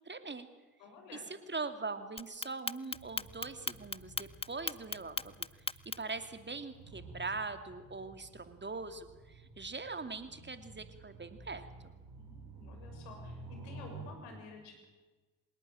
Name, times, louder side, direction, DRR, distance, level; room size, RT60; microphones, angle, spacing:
voice 1, 0.0-0.5 1.3-5.5 5.8-11.9, right 4 dB, 25° right, 9 dB, 2.7 m, -42 dB
voice 2, 0.8-1.3 12.1-14.9, left 4 dB, 75° left, 4 dB, 6.3 m, -52 dB
Clock, 2.2-6.2, left 4 dB, 15° left, 0.7 m, -37 dB
sound 1, 2.9-14.1, right 2 dB, 55° right, 7.2 m, -52 dB
26.0 x 18.5 x 9.0 m, 1.2 s
figure-of-eight pair, 45°, 43 cm